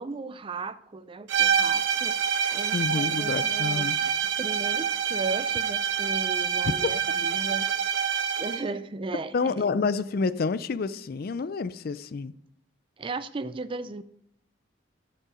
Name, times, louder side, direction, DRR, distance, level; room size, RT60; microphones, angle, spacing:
voice 1, 0.0-2.1 2.5-4.1 4.4-7.7 8.4-9.7 13.0-14.0, right 3 dB, 25° right, 0.4 m, -36 dB
sound 1, 1.3-8.7, right 7 dB, 75° right, 0.8 m, -26 dB
voice 2, 2.7-4.0 9.3-12.3, left 4 dB, 50° left, 0.4 m, -28 dB
12.5 x 5.4 x 5.0 m
head